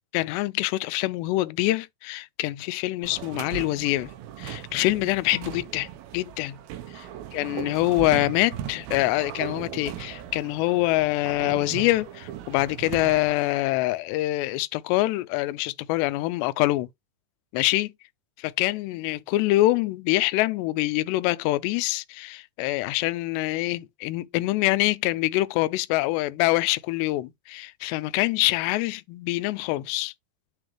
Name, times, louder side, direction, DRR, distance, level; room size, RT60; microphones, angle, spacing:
voice 1, 0.1-4.1 4.4-5.9 6.1-6.6 7.3-16.9 17.5-17.9 18.4-30.1, left 18 dB, 90° left, 2.7 m, -25 dB
sound 1, 3.0-13.6, right 11 dB, 75° right, 2.5 m, -38 dB
9.9 x 3.7 x 3.1 m
omnidirectional pair, 4.8 m